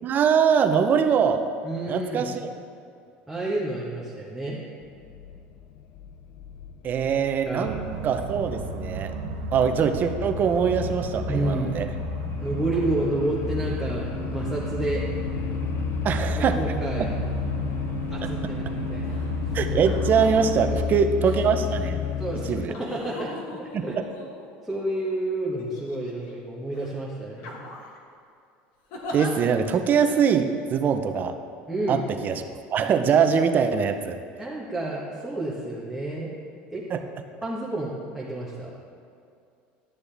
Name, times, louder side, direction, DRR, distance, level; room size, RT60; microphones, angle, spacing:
voice 1, 0.0-1.4 1.9-2.5 6.8-7.8 8.0-9.1 9.5-11.9 16.0-16.6 18.2-18.3 19.5-22.0 22.5-22.7 23.7-24.0 29.1-31.3 31.9-32.0 32.2-32.4 32.7-34.2 36.9-37.0, right 7 dB, 40° right, 8 dB, 0.7 m, -22 dB
voice 2, 1.6-2.3 3.3-4.6 7.4-7.7 11.3-11.8 12.4-14.0 14.3-15.0 16.4-17.1 18.1-19.3 20.8-21.1 22.2-23.3 23.6-24.0 24.6-27.6 31.7-32.0 34.4-36.3 36.7-36.8 37.4-38.7, right 2 dB, ahead, -6 dB, 1.3 m, -30 dB
sound 1, 4.8-22.7, left 9 dB, 50° left, 0.4 m, -32 dB
sound 2, 7.6-20.9, right 9 dB, 90° right, 0.5 m, -34 dB
sound 3, 19.1-19.3 19.8-20.4 21.2-21.8 22.7-24.8 25.6-26.3 26.7-26.9 27.4-28.0 28.9-29.3 30.1-30.2, left 2 dB, 70° left, 1.4 m, -40 dB
11.5 x 6.9 x 3.4 m, 2.5 s
supercardioid pair, 115°, 5 cm